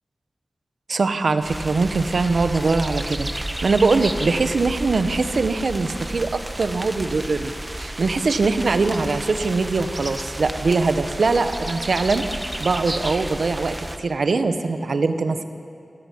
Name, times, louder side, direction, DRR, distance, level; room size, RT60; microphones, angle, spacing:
voice 1, 0.9-3.3 3.6-7.5 7.8-12.2 12.6-15.4, right 3 dB, 80° right, 9 dB, 1.3 m, -22 dB
sound 1, 1.4-14.0, right 1 dB, 25° right, 1.5 m, -32 dB
25.0 x 17.0 x 8.7 m, 2.4 s
cardioid pair, 45°, 0 cm